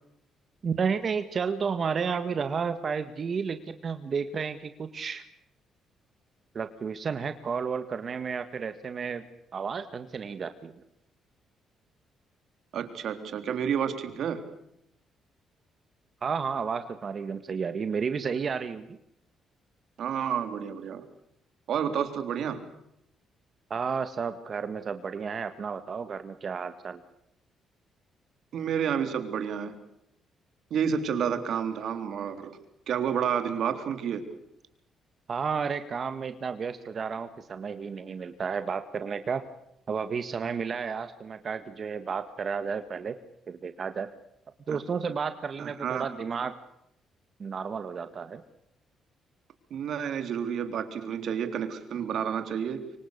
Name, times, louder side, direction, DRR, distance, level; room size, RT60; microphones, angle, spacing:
voice 1, 0.6-5.2 6.5-9.2 9.5-10.8 16.2-19.0 23.7-27.0 35.3-39.4 39.9-43.2 43.5-44.1 44.7-46.5 47.4-48.4, right 6 dB, 45° right, 10 dB, 1.7 m, -32 dB
voice 2, 12.7-14.5 20.0-21.0 21.7-22.7 28.5-29.8 30.7-32.6 32.9-34.4 44.7-44.8 45.6-46.1 46.4-46.5 49.7-52.9, right 8 dB, 70° right, 9 dB, 3.6 m, -30 dB
25.5 x 24.5 x 6.8 m, 0.79 s
cardioid pair, 90°, 0 cm